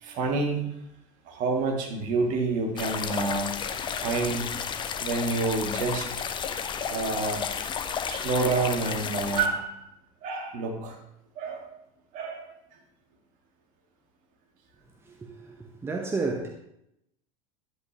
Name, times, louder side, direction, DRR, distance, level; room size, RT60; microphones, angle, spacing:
voice 1, 0.0-0.7 1.3-4.5 5.0-6.1 6.9-7.4 8.1-9.8 10.2-11.0 11.4-11.8 12.1-12.5, right 3 dB, 45° right, 1.9 m, -28 dB
sound 1, 2.8-9.5, left 7 dB, 25° left, 0.7 m, -32 dB
voice 2, 15.0-16.5, right 3 dB, 15° right, 0.9 m, -32 dB
10.5 x 8.2 x 3.0 m
figure-of-eight pair, 80°, 18 cm